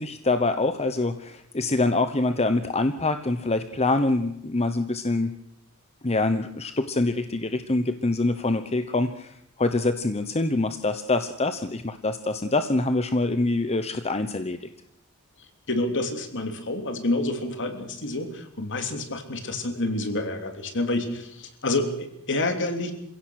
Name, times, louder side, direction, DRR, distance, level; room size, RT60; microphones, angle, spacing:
voice 1, 0.0-5.3 6.0-14.7, left 2 dB, 30° left, 9 dB, 1.0 m, -25 dB
voice 2, 15.7-22.9, left 2 dB, 55° left, 6 dB, 3.2 m, -28 dB
27.5 x 16.5 x 6.5 m, 0.76 s
head